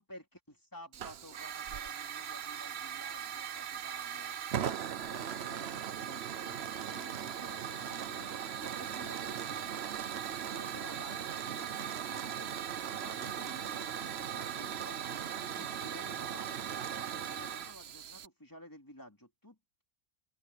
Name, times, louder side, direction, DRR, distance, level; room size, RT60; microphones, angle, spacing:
voice 1, 0.0-4.4 5.1-9.8 10.4-12.5 13.0-15.0 15.5-19.8, equal, 15° left, 3.4 m, -53 dB
Hiss / Fire, 0.9-18.3, right 9 dB, 55° right, 0.9 m, -38 dB
sound 1, 7.1-14.1, right 1 dB, 70° right, 6.3 m, -65 dB
omnidirectional pair, 1.5 m